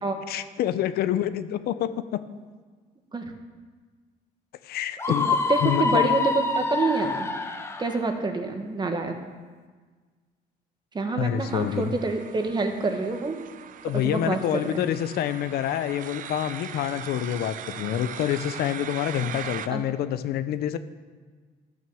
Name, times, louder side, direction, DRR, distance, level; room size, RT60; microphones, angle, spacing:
voice 1, 0.3-2.2 4.6-5.3 5.6-6.1 11.2-11.9 13.8-20.8, left 11 dB, 70° left, 12 dB, 0.7 m, -27 dB
Screaming, 5.0-7.9, left 4 dB, 15° left, 1.0 m, -26 dB
voice 2, 5.3-7.3 7.8-9.1 10.9-13.4 13.9-14.4 19.2-19.3 19.7-19.8, right 3 dB, 25° right, 5 dB, 1.4 m, -27 dB
sound 1, 11.4-19.7, right 9 dB, 50° right, 0.6 m, -40 dB
12.5 x 6.4 x 7.1 m, 1.5 s
cardioid pair, 110°, 17 cm